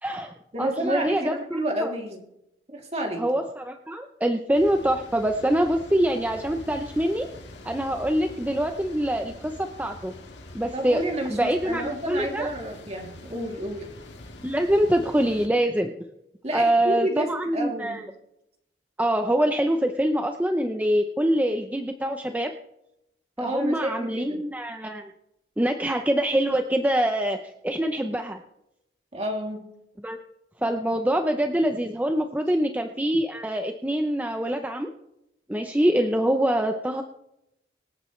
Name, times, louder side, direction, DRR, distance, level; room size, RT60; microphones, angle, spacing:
voice 1, 0.0-1.9 3.2-7.3 7.6-10.1 10.5-11.0 11.3-12.5 14.4-15.9 16.5-18.0 19.0-22.5 23.4-25.1 25.6-27.4 27.6-28.4 30.0-30.2 30.6-34.9 35.5-37.0, right 1 dB, 10° right, 5 dB, 0.7 m, -25 dB
voice 2, 0.5-2.2 2.7-3.2 10.7-13.9 16.4-17.3 17.5-18.0 23.4-24.4 29.1-29.7, right 1 dB, 35° right, 1 dB, 2.9 m, -30 dB
sound 1, 4.5-15.5, left 1 dB, 85° left, 2.0 m, -44 dB
26.0 x 8.8 x 3.2 m, 0.83 s
head